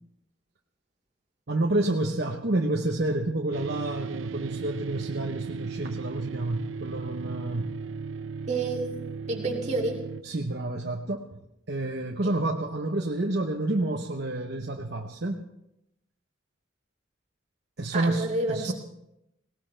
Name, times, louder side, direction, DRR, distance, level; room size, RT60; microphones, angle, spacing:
voice 1, 1.5-7.7 10.2-11.4 11.7-15.4 17.8-18.7, right 2 dB, 55° right, 2 dB, 0.9 m, -29 dB
sound 1, 3.5-10.2, right 5 dB, 80° right, 0.7 m, -36 dB
voice 2, 8.5-8.9 9.2-10.0 12.2-12.3 17.9-18.7, right 2 dB, 35° right, -1 dB, 2.5 m, -29 dB
19.0 x 19.0 x 3.4 m, 0.85 s
head